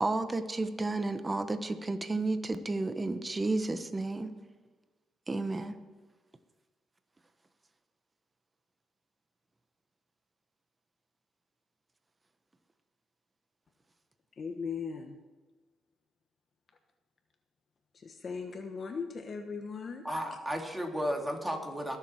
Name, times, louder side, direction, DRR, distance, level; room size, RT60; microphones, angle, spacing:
voice 1, 0.0-4.3 5.3-5.8, right 2 dB, 20° right, 9 dB, 1.0 m, -32 dB
voice 2, 14.4-15.2 17.9-20.0, left 5 dB, 45° left, 5 dB, 1.1 m, -38 dB
voice 3, 20.0-22.0, equal, 5° right, 2 dB, 2.5 m, -33 dB
22.0 x 7.4 x 4.4 m, 1.3 s
cardioid pair, 90°, 0 cm